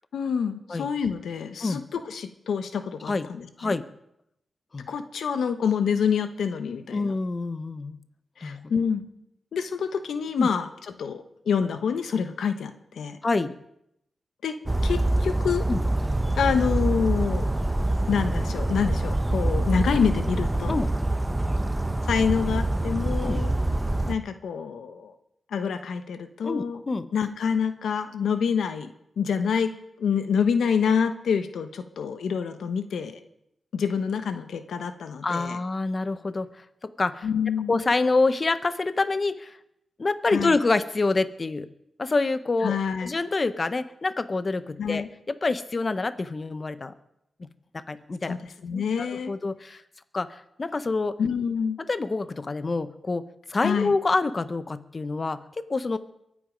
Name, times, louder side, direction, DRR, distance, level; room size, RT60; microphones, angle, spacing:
voice 1, 0.1-3.8 4.9-7.2 8.4-9.1 9.5-10.7 11.0-13.2 14.4-15.6 16.3-17.5 18.1-20.8 22.0-23.5 24.1-25.1 25.5-26.8 27.1-28.9 29.2-29.7 30.0-33.2 33.7-35.6 37.2-37.8 40.3-40.6 42.6-43.1 44.8-45.1 48.3-49.3 51.2-51.8 53.6-53.9, left 6 dB, 90° left, 9 dB, 1.1 m, -27 dB
voice 2, 6.9-8.0 8.4-8.6 10.4-10.5 13.2-13.5 15.7-15.9 20.7-20.9 23.2-23.5 26.4-27.1 35.2-37.3 37.7-39.6 40.0-41.7 42.0-42.8 43.0-46.9 47.7-48.4 48.7-49.8 50.1-51.2 51.9-53.2 53.5-56.0, left 3 dB, 40° left, 12 dB, 0.8 m, -27 dB
Bird vocalization bird call bird song, 14.7-24.2, right 1 dB, 15° right, 0.8 m, -25 dB
23.0 x 8.5 x 5.2 m, 0.79 s
cardioid pair, 65°, 0 cm